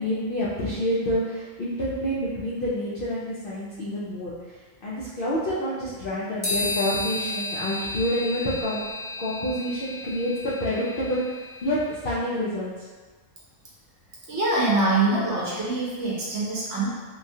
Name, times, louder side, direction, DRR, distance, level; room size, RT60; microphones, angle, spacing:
voice 1, 0.0-8.8 9.2-12.9, equal, 65° left, -9 dB, 0.5 m, -28 dB
sound 1, 6.4-11.7, left 2 dB, 30° left, 0.7 m, -32 dB
voice 2, 14.3-16.9, right 2 dB, 60° right, -6 dB, 0.9 m, -24 dB
3.0 x 2.3 x 2.6 m, 1.4 s
omnidirectional pair, 1.4 m